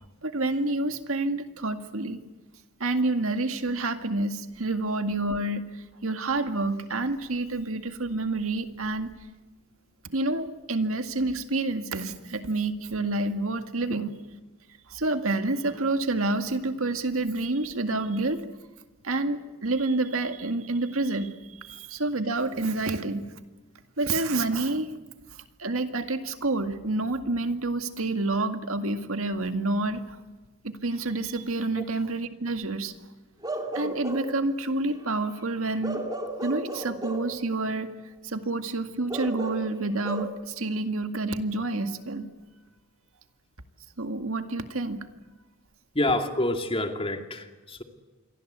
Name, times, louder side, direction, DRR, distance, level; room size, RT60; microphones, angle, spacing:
voice 1, 0.2-2.2 2.8-9.1 10.0-14.1 14.9-18.4 19.0-23.2 24.0-24.9 25.3-30.2 30.6-32.9 33.7-36.0 36.4-37.9 38.2-42.3 44.0-45.1, right 2 dB, 70° right, 7 dB, 2.0 m, -28 dB
Bark / Livestock farm animals working animals, 33.4-34.4 35.8-37.3 39.1-40.2, right 1 dB, 20° right, 3.0 m, -34 dB
voice 2, 45.9-47.8, left 1 dB, 25° left, 5 dB, 2.5 m, -27 dB
28.0 x 23.0 x 8.2 m, 1.2 s
head